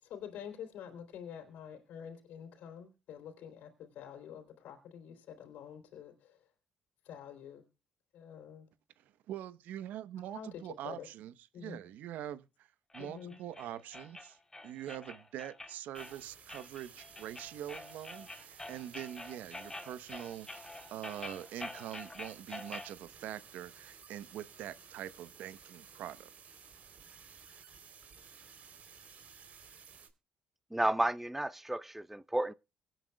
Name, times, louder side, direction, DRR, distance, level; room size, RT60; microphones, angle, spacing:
voice 1, 0.0-6.4 7.0-7.6 8.1-8.7 10.3-11.1 11.5-11.8 13.0-13.4, left 8 dB, 70° left, 3.3 m, -47 dB
voice 2, 9.0-12.7 12.9-14.4 14.6-26.3, right 12 dB, 70° right, 1.0 m, -44 dB
sound 1, 12.9-22.9, left 2 dB, 15° left, 3.7 m, -47 dB
sound 2, 15.9-30.1, right 6 dB, 55° right, 3.5 m, -55 dB
voice 3, 30.7-32.5, right 1 dB, 10° right, 0.6 m, -32 dB
24.0 x 9.2 x 2.3 m
hypercardioid pair, 55°, 3 cm